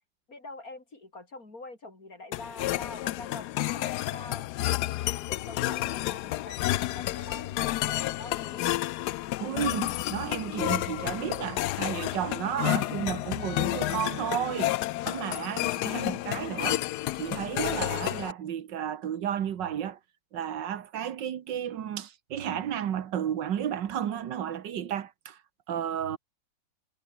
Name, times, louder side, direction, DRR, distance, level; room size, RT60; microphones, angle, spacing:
voice 1, 0.3-4.5 4.8-8.8, left 2 dB, 45° left, 5.8 m, -45 dB
sound 1, 2.3-18.3, left 16 dB, 70° left, 1.0 m, -30 dB
voice 2, 9.4-14.7 15.1-16.9 17.1-20.0 20.3-25.4 25.7-26.2, right 9 dB, 70° right, 1.8 m, -32 dB
omnidirectional pair, 2.0 m